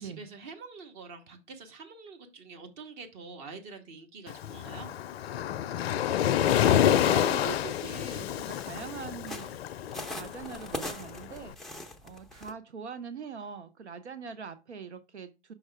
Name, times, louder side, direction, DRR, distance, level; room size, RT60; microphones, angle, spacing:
voice 1, 0.0-5.0, right 4 dB, 45° right, 1.2 m, -46 dB
Waves surf, 4.3-11.4, left 11 dB, 65° left, 0.5 m, -28 dB
voice 2, 5.7-9.5 10.1-11.6 12.0-15.5, right 7 dB, 85° right, 0.7 m, -42 dB
sound 1, 7.4-12.5, left 1 dB, ahead, 0.4 m, -43 dB
5.9 x 5.3 x 3.4 m
hypercardioid pair, 105°, 33 cm